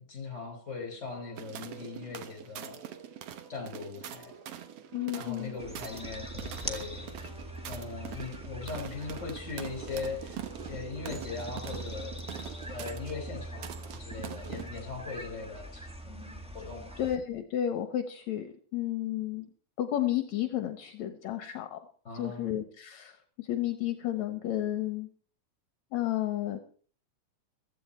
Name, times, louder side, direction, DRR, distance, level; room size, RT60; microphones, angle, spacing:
voice 1, 0.0-3.0 3.5-4.3 5.1-7.2 7.7-17.0 22.0-22.6, left 4 dB, 20° left, 4 dB, 5.3 m, -40 dB
sound 1, 1.1-13.8, right 3 dB, 25° right, 5.1 m, -54 dB
sound 2, 1.4-14.7, right 11 dB, 60° right, 1.8 m, -44 dB
voice 2, 4.9-5.6 17.0-19.5 19.8-21.8 22.1-25.1 25.9-26.6, left 12 dB, 70° left, 8 dB, 2.2 m, -32 dB
sound 3, 5.6-17.2, equal, 5° right, 0.6 m, -43 dB
15.5 x 14.5 x 4.3 m, 0.43 s
omnidirectional pair, 3.5 m